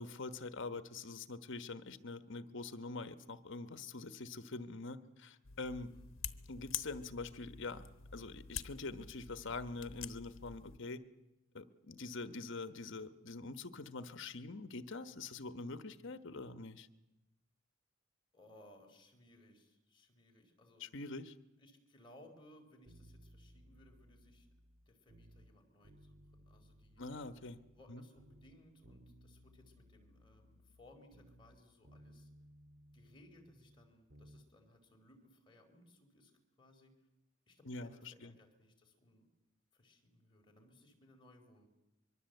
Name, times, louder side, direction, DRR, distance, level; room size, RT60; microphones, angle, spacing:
voice 1, 0.0-6.0 6.5-7.8 8.1-11.0 11.5-16.9 20.8-21.3 27.0-27.6 27.9-28.0 37.6-38.3, left 3 dB, 65° left, 11 dB, 1.2 m, -45 dB
sound 1, 5.4-10.8, left 9 dB, 85° left, 0.9 m, -47 dB
voice 2, 5.7-6.1 18.3-20.9 21.6-24.5 24.9-27.0 27.7-32.3 32.9-36.3 36.6-36.9 37.5-39.3 39.7-41.7, left 1 dB, 25° left, 1 dB, 4.3 m, -63 dB
sound 2, 22.9-25.5 25.8-27.9 28.2-31.6 31.8-34.5 34.8-34.9, equal, 50° right, 1.8 m, -61 dB
24.5 x 23.0 x 8.1 m, 0.99 s
head